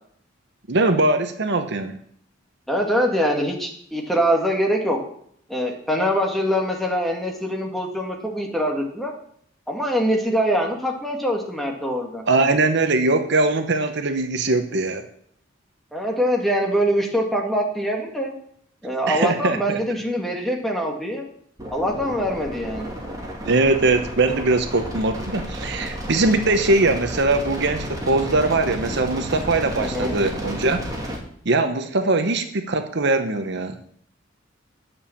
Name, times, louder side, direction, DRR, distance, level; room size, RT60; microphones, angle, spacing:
voice 1, 0.7-2.0 12.2-15.0 19.1-19.8 23.4-30.8 31.4-33.8, right 2 dB, 60° right, 7 dB, 0.9 m, -21 dB
voice 2, 2.7-5.0 5.5-9.1 9.7-12.2 15.9-18.3 18.8-21.3 21.7-22.9 29.8-30.2, equal, ahead, 0 dB, 1.9 m, -23 dB
sound 1, 21.6-31.2, equal, 20° right, 2.4 m, -32 dB
10.0 x 7.1 x 7.1 m, 0.65 s
head